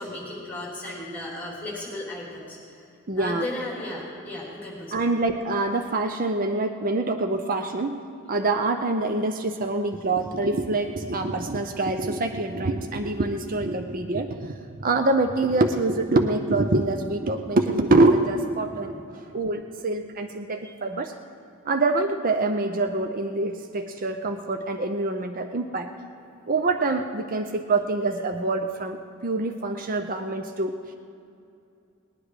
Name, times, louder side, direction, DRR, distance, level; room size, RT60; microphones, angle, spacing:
voice 1, 0.0-2.9 3.1-5.1 17.4-17.5 18.7-19.0 20.6-20.7 26.2-26.4, left 1 dB, 10° left, -5 dB, 3.4 m, -36 dB
voice 2, 3.1-3.4 4.9-8.0 8.3-18.9 19.3-21.1 21.7-25.9 26.5-30.7, right 2 dB, 40° right, 6 dB, 0.6 m, -25 dB
19.5 x 10.0 x 4.9 m, 2.6 s
head